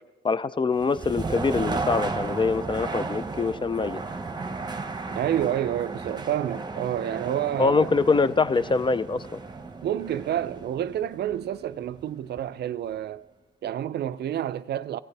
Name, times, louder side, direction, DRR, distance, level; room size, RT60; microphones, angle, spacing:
voice 1, 0.2-4.0 7.6-9.4, left 4 dB, 25° left, 0.4 m, -24 dB
sound 1, 0.7-12.6, right 3 dB, 20° right, 0.9 m, -34 dB
voice 2, 5.1-7.9 9.8-13.3 13.6-15.0, right 11 dB, 55° right, 0.4 m, -29 dB
16.5 x 14.5 x 3.3 m
cardioid pair, 90°, 20 cm